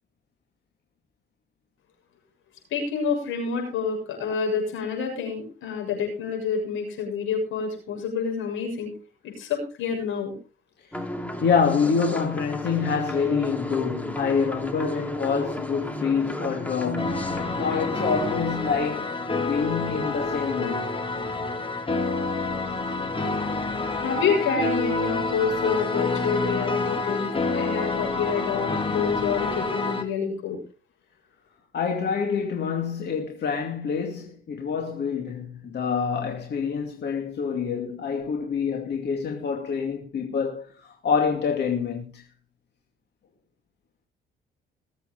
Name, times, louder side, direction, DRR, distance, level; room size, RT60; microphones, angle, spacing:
voice 1, 2.7-8.9 9.4-10.3 24.0-30.6, left 6 dB, 85° left, 7.1 m, -28 dB
sound 1, 10.9-18.4, equal, 5° left, 2.4 m, -33 dB
voice 2, 11.4-19.1 19.3-20.9 31.7-42.2, left 6 dB, 60° left, 2.5 m, -26 dB
sound 2, 17.0-30.0, left 3 dB, 25° left, 2.7 m, -28 dB
20.5 x 8.2 x 4.1 m
cardioid pair, 90°, 20 cm